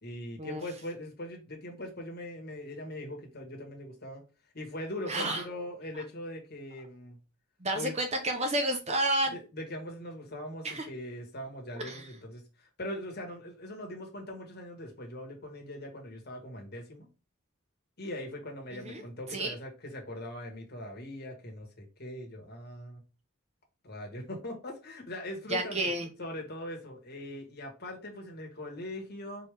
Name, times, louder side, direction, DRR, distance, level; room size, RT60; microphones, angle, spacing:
voice 1, 0.0-4.2 4.5-7.2 7.7-8.0 9.3-17.1 18.0-23.0 23.8-25.9 26.2-29.5, left 1 dB, 50° left, 1.5 m, -41 dB
voice 2, 5.1-5.4 7.6-9.4 10.6-10.9 11.8-12.1 18.7-19.0 19.3-19.5 25.5-26.1, right 1 dB, 30° right, 0.8 m, -30 dB
4.5 x 3.5 x 3.4 m
head